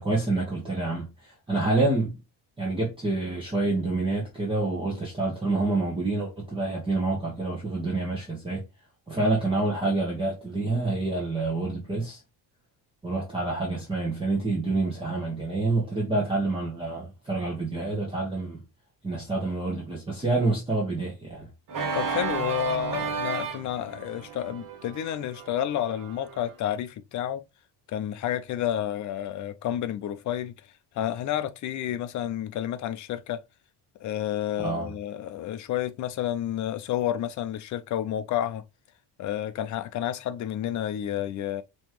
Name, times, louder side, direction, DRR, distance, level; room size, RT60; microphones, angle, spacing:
voice 1, 0.0-2.2 2.6-8.6 9.1-12.2 13.0-18.6 19.0-21.5 34.6-34.9, right 2 dB, 10° right, 1.2 m, -27 dB
Organ, 21.7-26.5, right 5 dB, 50° right, 1.3 m, -33 dB
voice 2, 21.9-27.4 27.9-30.5 30.9-33.4 34.0-38.6 39.2-41.6, left 11 dB, 45° left, 0.6 m, -30 dB
5.4 x 3.1 x 3.0 m
cardioid pair, 175°, 41 cm